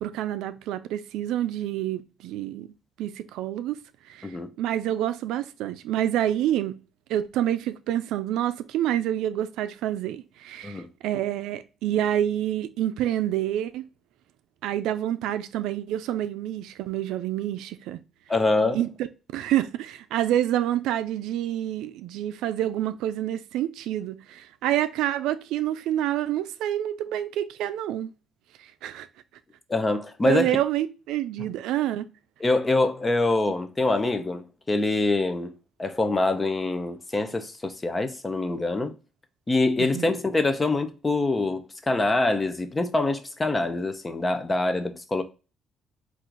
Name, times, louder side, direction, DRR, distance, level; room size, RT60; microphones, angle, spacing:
voice 1, 0.0-2.7 3.0-3.8 4.1-6.8 7.1-13.8 14.6-18.0 18.7-18.9 19.3-28.1 28.8-29.1 30.2-32.1 39.8-40.1, right 12 dB, 85° right, 0.4 m, -27 dB
voice 2, 18.3-18.8 29.7-30.6 32.4-35.5 35.8-38.9 39.5-45.2, left 2 dB, 15° left, 0.5 m, -25 dB
3.8 x 2.4 x 4.6 m
cardioid pair, 155°, 0 cm